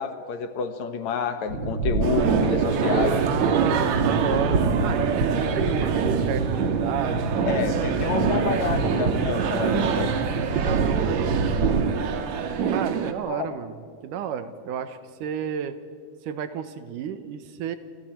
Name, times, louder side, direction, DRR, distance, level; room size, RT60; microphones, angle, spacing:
voice 1, 0.0-3.2 7.5-10.1 10.5-10.8 13.3-13.5, left 7 dB, 65° left, 8 dB, 2.5 m, -29 dB
sound 1, 1.5-11.8, right 3 dB, 40° right, 2.1 m, -27 dB
sound 2, 2.0-13.1, right 7 dB, 70° right, 2.5 m, -25 dB
voice 2, 3.3-8.1 10.6-11.7 12.7-13.7 14.0-15.7 16.2-17.8, right 8 dB, 85° right, 10 dB, 2.7 m, -32 dB
29.0 x 28.0 x 4.5 m, 2.1 s
omnidirectional pair, 3.6 m